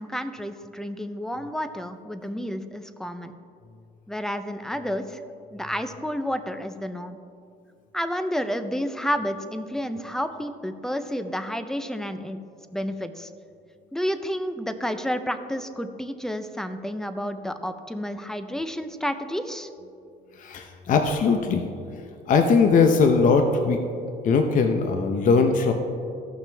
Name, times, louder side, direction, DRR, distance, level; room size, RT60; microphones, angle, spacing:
voice 1, 0.0-3.3 4.1-5.2 5.5-7.2 7.9-12.4 12.7-13.3 13.9-19.7, equal, 5° left, 9 dB, 0.5 m, -30 dB
voice 2, 20.3-21.6 21.9-23.8 24.2-25.7, left 4 dB, 50° left, 5 dB, 0.7 m, -20 dB
15.0 x 5.9 x 3.4 m, 2.5 s
cardioid pair, 110°, 17 cm